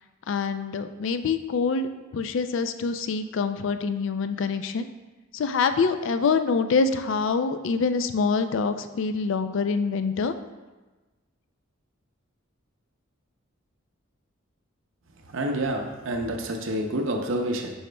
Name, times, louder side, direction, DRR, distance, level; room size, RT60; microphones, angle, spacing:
voice 1, 0.3-4.9 5.3-10.3, left 4 dB, 65° left, 10 dB, 0.4 m, -25 dB
voice 2, 15.3-17.7, right 1 dB, 65° right, 2 dB, 0.6 m, -28 dB
10.0 x 4.2 x 2.2 m, 1.2 s
head